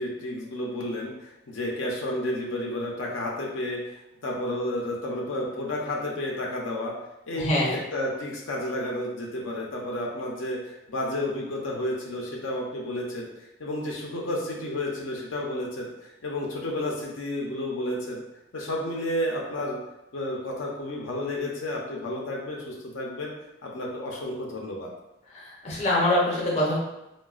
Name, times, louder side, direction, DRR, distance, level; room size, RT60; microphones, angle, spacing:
voice 1, 0.0-6.9 7.3-15.9 16.2-18.2 18.5-19.8 20.1-23.3 23.6-24.9, left 1 dB, 75° left, -2 dB, 0.5 m, -31 dB
voice 2, 7.4-7.7 25.3-26.8, left 1 dB, 35° left, -4 dB, 0.6 m, -24 dB
3.9 x 2.2 x 2.3 m, 0.93 s
head